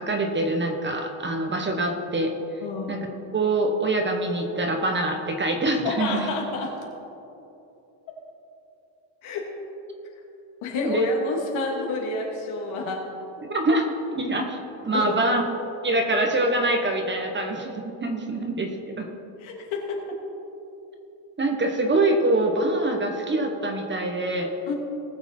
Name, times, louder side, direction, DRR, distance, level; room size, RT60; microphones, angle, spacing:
voice 1, 0.0-2.3 2.9-3.1 3.3-6.2 10.8-11.1 13.5-14.6 14.8-15.4 15.8-19.1 21.4-24.5, right 2 dB, 20° right, 4 dB, 1.1 m, -24 dB
voice 2, 2.6-3.0 5.8-6.8 9.2-9.5 10.6-13.1 14.9-15.3 19.4-20.2 24.7-24.8, left 3 dB, 70° left, 0 dB, 2.6 m, -29 dB
19.0 x 6.9 x 4.4 m, 2.9 s
cardioid pair, 125°, 49 cm